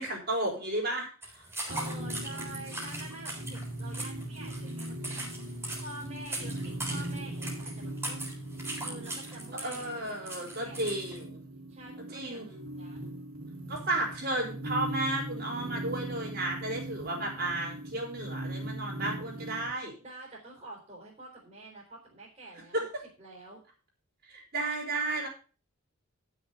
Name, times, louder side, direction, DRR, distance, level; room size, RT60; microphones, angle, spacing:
voice 1, 0.0-1.5 9.6-11.4 12.1-12.5 13.7-19.9 22.7-22.8 24.2-25.3, right 2 dB, 45° right, -1 dB, 4.2 m, -33 dB
sound 1, 1.2-11.2, right 1 dB, 10° right, 3.8 m, -40 dB
voice 2, 1.7-5.3 5.8-8.3 8.8-11.0 11.7-13.0 20.0-22.9 23.2-23.6, right 2 dB, 30° right, -3 dB, 3.9 m, -47 dB
sound 2, 1.7-19.7, right 1 dB, 75° right, 3.3 m, -39 dB
12.0 x 6.5 x 5.6 m, 0.37 s
head